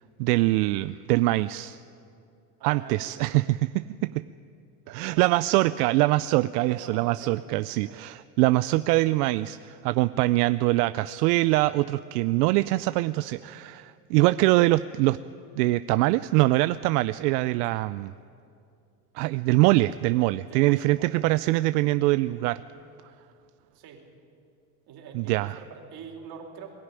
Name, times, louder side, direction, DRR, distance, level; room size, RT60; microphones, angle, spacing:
voice 1, 0.2-1.8 2.6-4.2 4.9-15.2 15.6-18.1 19.1-22.6 25.1-25.6, right 19 dB, 85° right, 14 dB, 0.6 m, -23 dB
voice 2, 2.6-3.1 4.8-5.3 6.6-7.4 7.8-8.0 20.5-21.2 23.7-24.0 24.9-26.7, right 6 dB, 55° right, 2 dB, 4.0 m, -44 dB
21.5 x 13.5 x 9.8 m, 2.5 s
supercardioid pair, 105°, 46 cm